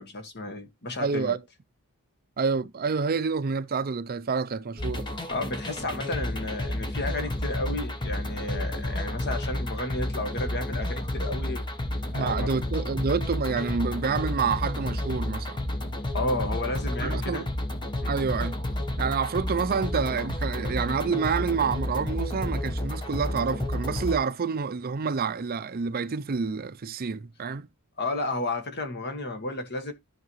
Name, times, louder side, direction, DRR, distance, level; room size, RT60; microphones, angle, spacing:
voice 1, 0.0-1.4 5.3-11.6 12.1-12.5 16.1-17.5 18.0-18.2 28.0-29.9, left 2 dB, 50° left, 1.7 m, -32 dB
voice 2, 1.0-1.4 2.4-5.1 12.1-15.6 17.0-17.5 18.1-18.6 19.0-27.7, right 5 dB, 45° right, 0.5 m, -28 dB
sound 1, 4.8-24.2, left 1 dB, 20° left, 1.2 m, -31 dB
14.0 x 4.8 x 3.0 m
head